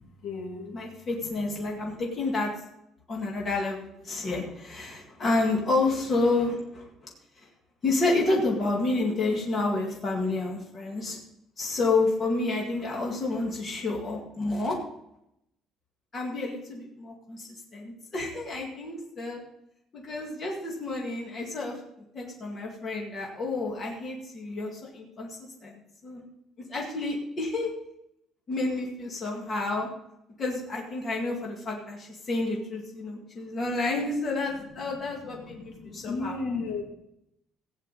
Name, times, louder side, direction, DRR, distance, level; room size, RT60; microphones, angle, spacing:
voice 1, 0.0-0.8 1.6-1.9 34.9-36.8, left 4 dB, 60° left, 1 dB, 2.6 m, -36 dB
voice 2, 0.7-2.5 3.1-6.9 7.8-11.2 11.6-14.8 16.1-19.4 19.9-21.7 22.1-26.2 26.7-27.7 28.5-29.9 30.4-36.4, left 2 dB, 25° left, -2 dB, 2.2 m, -29 dB
15.5 x 9.5 x 4.2 m, 0.80 s
cardioid pair, 165°, 0 cm